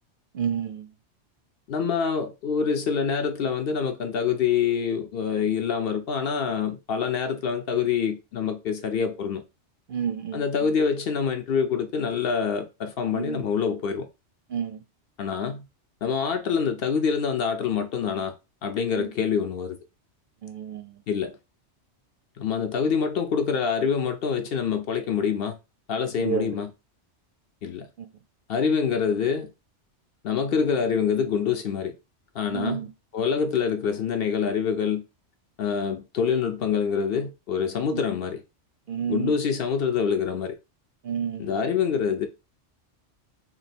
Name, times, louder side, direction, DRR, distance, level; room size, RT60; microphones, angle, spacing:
voice 1, 0.3-0.9 9.9-10.4 13.1-13.4 14.5-14.8 18.9-19.1 20.4-20.9 26.2-26.5 28.0-28.1 32.5-32.9 37.9-38.0 38.9-39.4 41.0-41.6, right 8 dB, 60° right, 0.6 m, -30 dB
voice 2, 1.7-9.4 10.3-14.1 15.2-15.7 16.0-18.3 18.6-19.8 21.1-21.3 22.4-25.6 25.9-26.7 27.6-27.9 28.5-29.5 30.2-31.9 32.3-32.9 33.1-35.0 35.6-38.4 39.1-40.6 41.4-42.3, left 6 dB, 60° left, 0.7 m, -26 dB
2.9 x 2.9 x 4.2 m
omnidirectional pair, 1.2 m